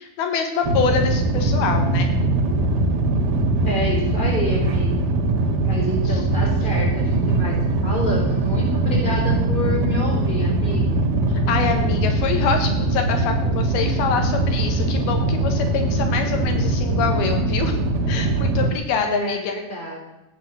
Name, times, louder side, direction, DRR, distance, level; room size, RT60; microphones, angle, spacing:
voice 1, 0.0-2.1 6.1-6.2 11.5-17.8 18.1-19.6, left 6 dB, 80° left, 5 dB, 3.4 m, -25 dB
sound 1, 0.6-18.7, right 2 dB, 80° right, 3.3 m, -21 dB
voice 2, 3.7-5.1 5.6-11.0 19.1-20.1, equal, 15° left, -1 dB, 3.9 m, -28 dB
14.5 x 9.3 x 7.4 m, 0.96 s
omnidirectional pair, 4.3 m